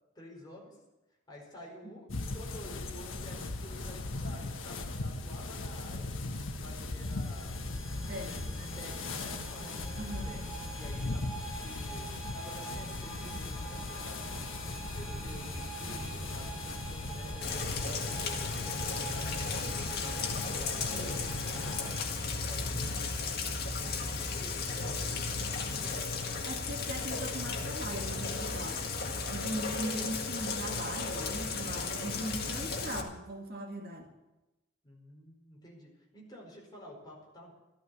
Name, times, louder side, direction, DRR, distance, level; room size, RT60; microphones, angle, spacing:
voice 1, 0.1-0.8 1.3-6.1 6.5-7.5 7.9-10.4 10.8-14.5 14.9-20.2 20.5-23.3 23.6-26.4 34.8-37.5, left 1 dB, 20° left, -2 dB, 4.7 m, -50 dB
sound 1, 2.1-21.8, left 2 dB, 85° left, 1.4 m, -39 dB
sound 2, 7.0-22.0, right 1 dB, 5° right, 6.5 m, -44 dB
voice 2, 8.1-8.5 10.0-10.4 20.9-21.2 26.4-28.8 29.3-34.1, right 1 dB, 50° right, 2 dB, 1.9 m, -39 dB
Rain, 17.4-33.0, left 4 dB, 50° left, 1.9 m, -35 dB
15.0 x 13.0 x 6.9 m, 1.0 s
head